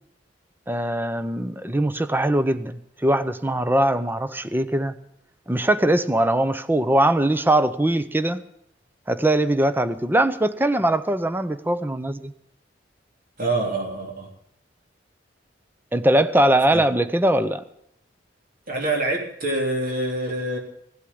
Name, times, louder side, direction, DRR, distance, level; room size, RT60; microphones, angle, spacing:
voice 1, 0.7-4.9 5.5-8.4 9.1-12.3 15.9-17.6, right 1 dB, 10° right, 0.7 m, -21 dB
voice 2, 13.4-14.3 16.7-16.8 18.7-20.6, right 2 dB, 50° right, 3.3 m, -25 dB
16.5 x 8.2 x 8.6 m
head